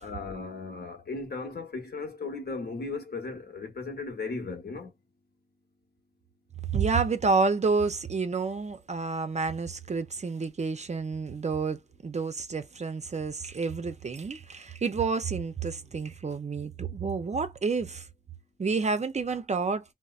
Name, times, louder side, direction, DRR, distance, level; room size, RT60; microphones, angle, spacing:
voice 1, 0.0-4.9, left 3 dB, 55° left, 0.9 m, -36 dB
voice 2, 6.7-18.1 18.6-19.8, right 4 dB, 35° right, 0.5 m, -29 dB
4.0 x 2.0 x 2.4 m
wide cardioid pair, 90°, 20 cm